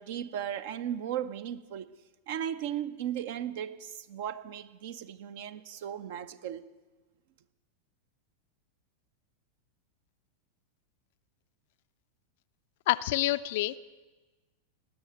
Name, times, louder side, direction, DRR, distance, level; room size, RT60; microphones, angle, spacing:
voice 1, 0.0-1.9 2.3-6.7, right 10 dB, 50° right, 13 dB, 0.7 m, -36 dB
voice 2, 12.9-13.8, left 17 dB, 50° left, 14 dB, 0.4 m, -27 dB
18.5 x 6.4 x 9.1 m, 1.2 s
figure-of-eight pair, 90°, 0 cm